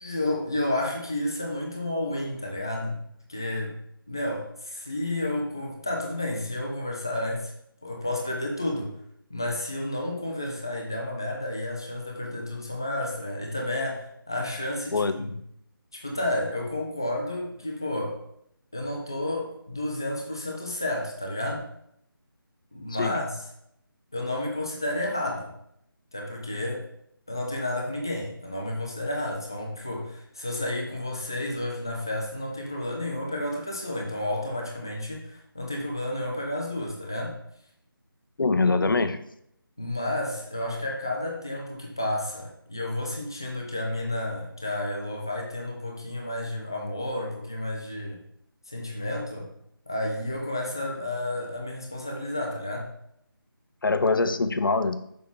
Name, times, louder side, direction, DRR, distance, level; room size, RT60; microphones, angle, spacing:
voice 1, 0.0-3.0 3.3-3.8 4.1-7.5 7.8-9.0 9.3-15.3 15.9-18.2 18.7-21.7 22.7-23.4 24.1-25.5 26.1-26.8 27.3-37.4 39.8-48.2 48.7-49.5 49.9-52.9, left 1 dB, 10° left, -1 dB, 0.4 m, -31 dB
voice 2, 14.9-15.4 23.0-23.1 38.4-39.2 53.8-55.0, left 3 dB, 65° left, 11 dB, 0.7 m, -23 dB
6.2 x 5.6 x 3.6 m, 0.72 s
figure-of-eight pair, 170°, 12 cm